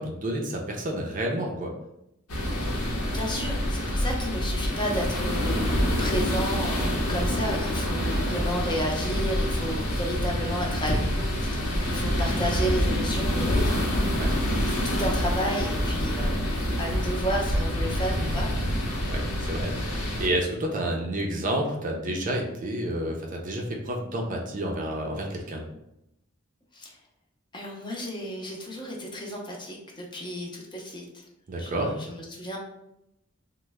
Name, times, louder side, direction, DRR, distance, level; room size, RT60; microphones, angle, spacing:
voice 1, 0.0-1.7 14.2-14.3 19.1-25.6 31.5-31.9, right 1 dB, 40° right, 0 dB, 0.5 m, -30 dB
sound 1, 2.3-20.3, equal, 90° left, 0.8 m, -26 dB
voice 2, 3.1-14.0 14.7-18.5 26.7-27.0 27.5-31.2 31.6-32.6, equal, 20° left, -1 dB, 0.6 m, -32 dB
3.1 x 2.1 x 3.4 m, 0.85 s
head